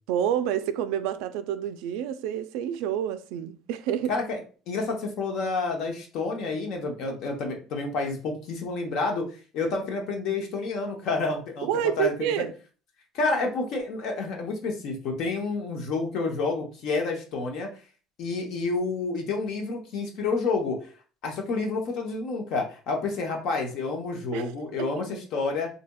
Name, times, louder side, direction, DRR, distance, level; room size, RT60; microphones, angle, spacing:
voice 1, 0.1-4.1 11.6-12.5 24.3-24.5 24.8-24.9, right 9 dB, 80° right, 0.3 m, -28 dB
voice 2, 4.1-9.2 9.5-11.7 12.0-12.5 13.1-17.7 18.2-20.8 21.2-25.7, left 3 dB, 55° left, 0.8 m, -29 dB
4.1 x 2.7 x 2.3 m
cardioid pair, 160°, 0 cm